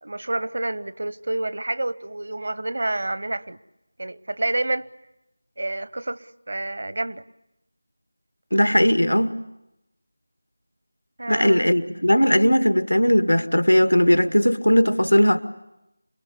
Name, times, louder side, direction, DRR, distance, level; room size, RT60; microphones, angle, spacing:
voice 1, 0.0-3.6 4.0-4.9 5.6-7.2 11.2-11.7, right 2 dB, 55° right, 0.9 m, -28 dB
voice 2, 8.5-9.3 11.3-15.4, equal, 85° left, 1.9 m, -18 dB
28.0 x 22.0 x 8.5 m
figure-of-eight pair, 165°, 0 cm